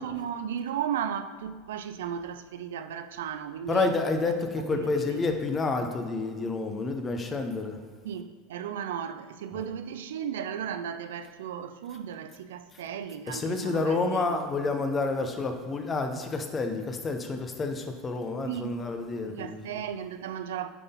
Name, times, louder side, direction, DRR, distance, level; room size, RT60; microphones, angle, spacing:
voice 1, 0.0-3.9 4.7-5.4 8.0-14.4 18.5-18.7 19.3-20.7, right 8 dB, 80° right, 0.4 m, -35 dB
voice 2, 3.7-7.8 9.5-9.6 13.3-19.6, left 3 dB, 30° left, 0.9 m, -29 dB
9.2 x 4.0 x 3.9 m
hypercardioid pair, 90°, 0 cm